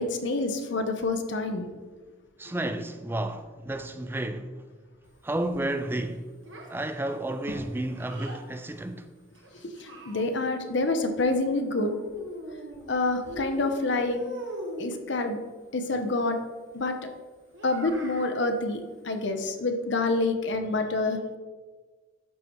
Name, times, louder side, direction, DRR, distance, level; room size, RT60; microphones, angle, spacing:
voice 1, 0.0-1.7 9.6-12.0 12.9-14.2 14.8-15.4 15.7-16.4 16.7-17.0 17.6-21.2, left 2 dB, 60° left, 0.7 m, -27 dB
voice 2, 2.4-4.6 5.2-6.3 6.7-9.1, right 1 dB, 10° right, 0.3 m, -31 dB
Child speech kid speaking, 6.5-8.4 9.4-10.6 11.7-12.9 13.2-15.0 17.5-18.4, equal, 65° right, 1.2 m, -41 dB
11.5 x 4.9 x 3.0 m
head